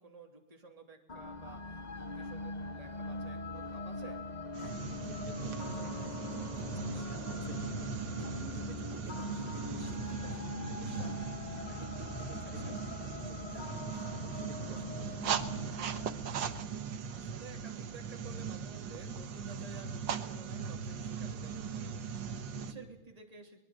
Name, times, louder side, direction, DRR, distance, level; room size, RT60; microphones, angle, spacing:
voice 1, 0.0-4.2 12.3-12.8 17.1-23.6, right 4 dB, 15° right, 2 dB, 2.9 m, -53 dB
sound 1, 1.1-17.3, left 2 dB, 60° left, 0.4 m, -42 dB
sound 2, 4.5-22.7, right 6 dB, 60° right, 1.9 m, -39 dB
voice 2, 4.6-11.2 11.7-15.6 22.6-22.9, right 2 dB, 40° right, 3 dB, 3.0 m, -53 dB
23.0 x 21.0 x 7.7 m, 0.98 s
omnidirectional pair, 2.3 m